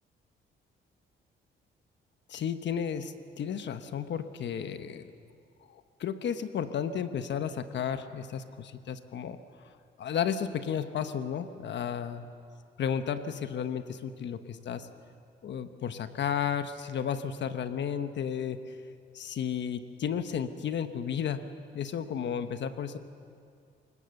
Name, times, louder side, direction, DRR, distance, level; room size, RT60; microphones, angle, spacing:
voice 1, 2.3-5.1 5.7-9.4 10.0-12.3 12.8-14.9 15.4-18.8 19.1-23.0, left 8 dB, 65° left, 9 dB, 1.2 m, -33 dB
29.0 x 18.5 x 6.7 m, 2.3 s
cardioid pair, 90°, 20 cm